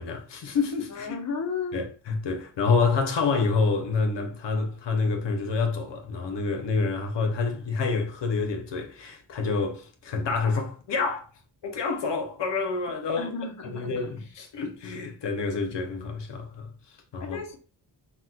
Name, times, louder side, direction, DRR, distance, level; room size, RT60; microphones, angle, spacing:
voice 1, 0.0-1.2 1.7-11.3 11.6-13.3 13.7-17.4, left 4 dB, 70° left, 0.8 m, -28 dB
voice 2, 0.9-1.8 13.2-14.1 17.2-17.6, left 4 dB, 40° left, 0.7 m, -34 dB
4.1 x 2.2 x 2.3 m
cardioid pair, 90°, 44 cm